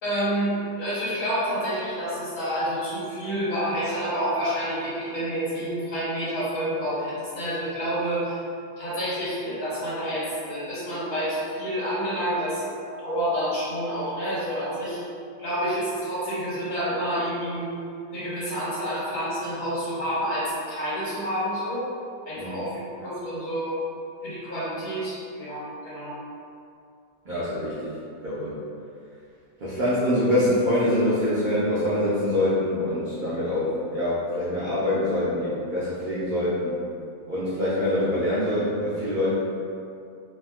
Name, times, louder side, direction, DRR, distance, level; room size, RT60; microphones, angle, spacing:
voice 1, 0.0-8.4 8.8-12.6 13.0-15.0 15.4-17.7 18.1-21.9 22.2-23.8 24.2-26.2, equal, 75° left, -11 dB, 1.6 m, -28 dB
voice 2, 27.2-28.0 28.2-28.6 29.6-36.8 37.2-39.3, left 1 dB, 80° right, -11 dB, 0.4 m, -25 dB
3.4 x 2.1 x 2.3 m, 2.5 s
omnidirectional pair, 1.6 m